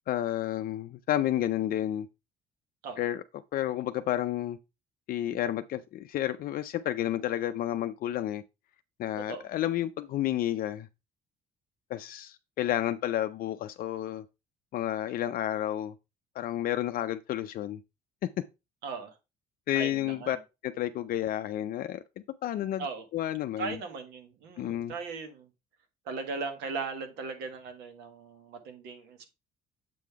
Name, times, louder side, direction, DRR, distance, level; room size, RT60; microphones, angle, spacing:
voice 1, 0.1-2.1 3.0-3.2 3.5-4.6 5.1-8.4 9.0-10.9 11.9-14.2 14.7-15.9 16.4-17.8 19.7-20.4 20.6-22.0 22.4-22.9 23.1-23.8 24.6-24.9, left 12 dB, 60° left, 0.5 m, -31 dB
voice 2, 18.8-19.1 19.7-20.4 22.8-23.0 23.6-25.5 26.0-29.3, right 4 dB, 85° right, 1.5 m, -38 dB
7.6 x 3.7 x 4.6 m
cardioid pair, 110°, 17 cm